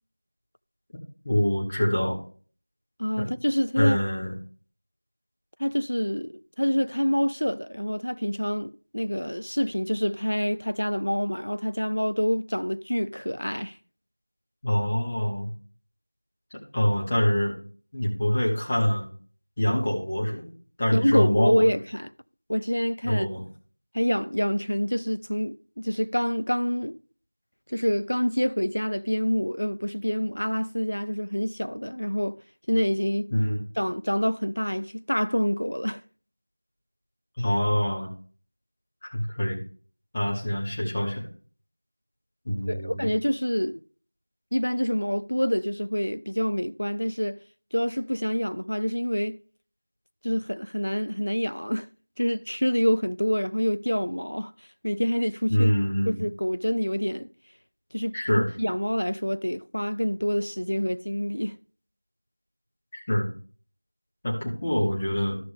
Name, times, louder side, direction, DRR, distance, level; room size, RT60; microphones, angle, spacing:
voice 1, 1.2-2.2 3.2-3.3 3.8-4.3 14.6-15.5 16.7-17.5 17.9-19.1 19.6-20.5 20.8-21.7 23.0-23.4 33.3-33.6 37.4-38.1 39.0-39.6 40.1-41.3 42.4-43.0 55.5-56.2 58.1-58.5 63.1-63.3 64.2-65.4, equal, 10° left, 0.6 m, -25 dB
voice 2, 3.0-4.0 5.6-13.8 20.9-22.1 22.5-23.3 23.9-27.0 27.7-32.4 32.7-33.3 33.8-36.0 42.7-43.8 44.5-47.4 47.7-49.4 50.2-51.9 52.2-54.5 54.8-55.7 56.1-57.3 57.9-61.6, equal, 70° left, 0.5 m, -26 dB
13.0 x 5.9 x 3.4 m
figure-of-eight pair, 180°, 0 cm